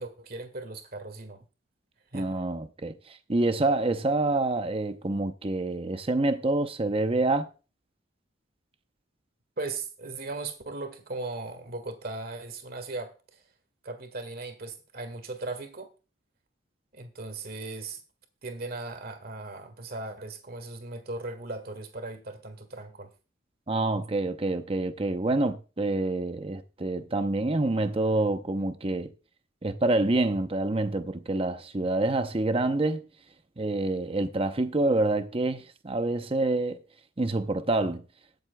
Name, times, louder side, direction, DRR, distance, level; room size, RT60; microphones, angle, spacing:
voice 1, 0.0-1.4 2.1-2.4 9.6-13.4 13.8-15.9 16.9-18.0 18.4-23.1, right 3 dB, 50° right, 1.8 m, -38 dB
voice 2, 2.1-7.5 23.7-29.1 29.6-33.0 33.6-36.8 37.2-38.0, right 2 dB, 30° right, 0.7 m, -27 dB
21.5 x 7.8 x 2.2 m
head